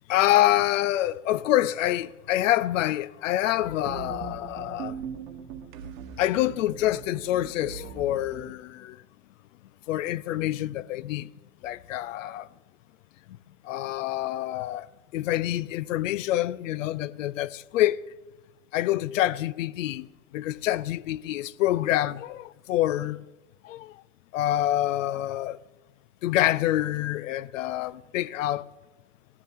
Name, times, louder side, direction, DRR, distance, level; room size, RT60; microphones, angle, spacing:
voice 1, 0.1-4.9 6.2-9.0 9.9-11.3 11.6-12.5 13.7-14.9 15.1-18.0 18.7-20.1 20.3-23.2 23.6-23.9 24.3-25.6 26.2-28.6, left 14 dB, 65° left, 0.6 m, -26 dB
sound 1, 3.5-8.5, right 7 dB, 70° right, 1.7 m, -40 dB
18.0 x 14.5 x 3.6 m
hypercardioid pair, 85°, 42 cm